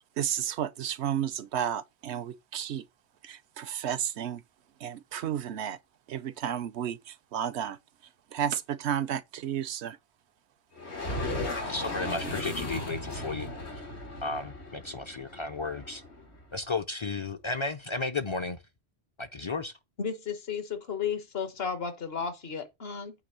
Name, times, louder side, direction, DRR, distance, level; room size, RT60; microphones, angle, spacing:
voice 1, 0.2-2.8 3.2-4.4 4.8-5.8 6.1-7.8 8.3-10.0, right 9 dB, 90° right, 0.9 m, -32 dB
sound 1, 10.8-16.4, left 1 dB, 80° left, 2.4 m, -36 dB
voice 2, 11.5-13.5 14.2-16.0 16.5-18.6 19.2-19.7, left 3 dB, 40° left, 0.5 m, -33 dB
voice 3, 20.0-23.1, left 6 dB, 65° left, 1.4 m, -33 dB
8.6 x 3.2 x 6.6 m
omnidirectional pair, 1.1 m